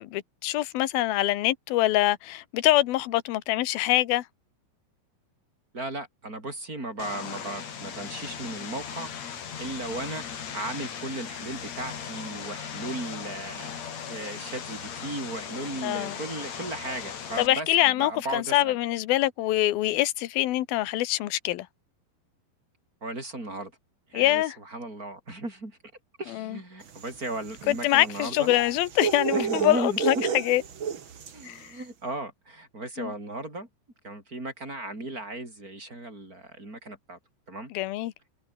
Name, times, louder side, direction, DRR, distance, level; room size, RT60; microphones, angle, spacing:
voice 1, 0.0-4.2 15.8-16.2 17.4-21.7 24.1-24.6 26.3-26.6 27.7-30.6 31.4-31.8 33.0-33.1 37.7-38.1, left 15 dB, 70° left, 2.6 m, -24 dB
voice 2, 5.7-10.2 10.5-18.8 23.0-23.7 24.1-25.8 26.2-28.5 29.3-30.0 30.3-30.4 31.3-33.7 34.0-37.2 37.5-37.7, right 2 dB, 20° right, 6.8 m, -36 dB
Vehicle, 7.0-17.5, left 7 dB, 45° left, 3.1 m, -38 dB
sound 1, 26.9-31.5, right 7 dB, 60° right, 1.3 m, -31 dB
omnidirectional pair, 5.3 m